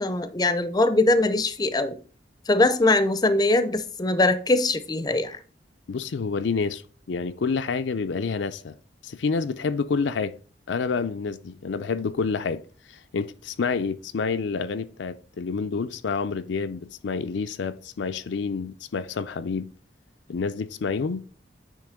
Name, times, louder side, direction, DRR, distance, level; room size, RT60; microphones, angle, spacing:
voice 1, 0.0-2.0 2.5-5.4, left 2 dB, 20° left, 0.5 m, -22 dB
voice 2, 5.9-6.8 7.1-8.8 9.0-10.3 10.7-12.6 12.9-19.7 20.3-21.3, left 5 dB, 85° left, 0.5 m, -28 dB
9.0 x 3.0 x 5.0 m
head